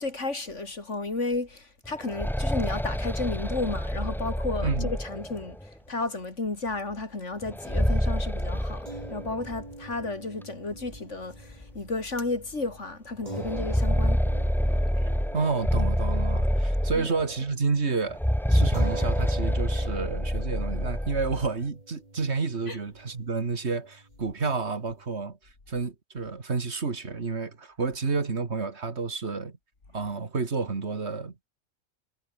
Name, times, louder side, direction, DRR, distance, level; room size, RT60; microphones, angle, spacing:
voice 1, 0.0-5.6 5.9-14.2 17.0-17.1 22.7-22.8, left 3 dB, 60° left, 3.8 m, -33 dB
sound 1, 1.9-5.7 7.4-9.6 9.9-10.0 10.9-11.0 11.5-11.6 13.3-17.4 18.1-21.5, equal, ahead, 0.6 m, -27 dB
sound 2, 8.9-17.4 17.7-17.8 18.7-25.3, right 2 dB, 30° right, 3.5 m, -44 dB
voice 2, 15.3-18.2 18.5-25.4 25.7-29.6 29.9-31.5, right 4 dB, 55° right, 2.2 m, -30 dB
omnidirectional pair, 1.4 m